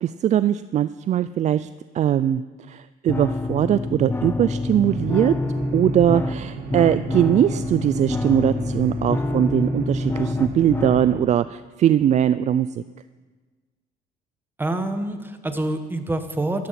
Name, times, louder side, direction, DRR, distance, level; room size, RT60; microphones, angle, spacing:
voice 1, 0.0-1.7 1.9-2.4 2.7-5.3 5.7-12.8, right 10 dB, 45° right, 14 dB, 0.4 m, -20 dB
sound 1, 3.1-11.1, left 2 dB, 15° left, 0.6 m, -27 dB
sound 2, 4.8-11.2, right 5 dB, 65° right, 2.0 m, -35 dB
voice 2, 14.6-16.7, right 1 dB, 10° right, 7 dB, 1.4 m, -26 dB
14.0 x 12.5 x 5.9 m, 1.4 s
cardioid pair, 110°, 17 cm